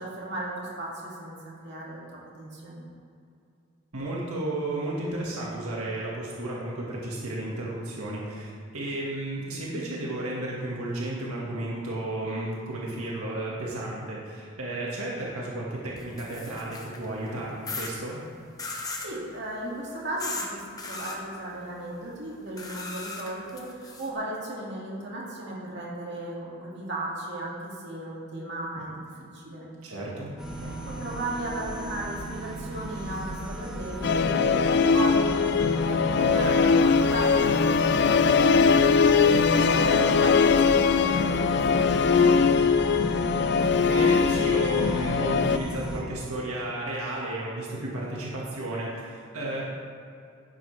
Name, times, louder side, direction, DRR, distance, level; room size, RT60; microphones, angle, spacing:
voice 1, 0.0-2.8 18.7-29.7 30.9-37.6 39.1-42.4, right 1 dB, 50° right, -5 dB, 2.3 m, -36 dB
voice 2, 3.9-18.2 28.7-28.8 29.8-30.3 30.6-30.8 38.7-38.9 43.9-49.7, right 1 dB, 85° right, -4 dB, 1.8 m, -33 dB
sound 1, 16.0-17.0 17.7-17.9 18.6-19.1 20.2-20.5 20.8-21.2 22.6-24.1, left 3 dB, 15° left, 0.9 m, -36 dB
sound 2, 30.4-46.0, right 1 dB, ahead, 1.6 m, -35 dB
Musical instrument, 34.0-45.6, left 5 dB, 50° left, 0.4 m, -21 dB
11.0 x 10.0 x 3.4 m, 2.5 s
head